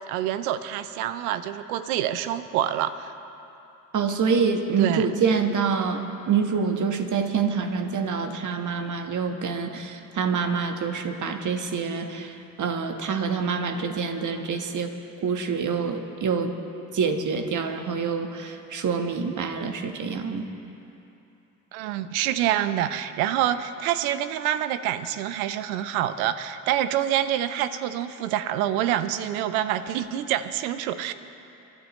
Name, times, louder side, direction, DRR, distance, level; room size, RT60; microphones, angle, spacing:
voice 1, 0.1-3.1 4.8-5.1 21.7-31.1, right 11 dB, 75° right, 12 dB, 0.7 m, -26 dB
voice 2, 3.9-14.9 15.2-16.5 16.9-20.5, right 5 dB, 45° right, 6 dB, 1.5 m, -26 dB
26.5 x 12.5 x 3.2 m, 2.9 s
hypercardioid pair, 50°, 42 cm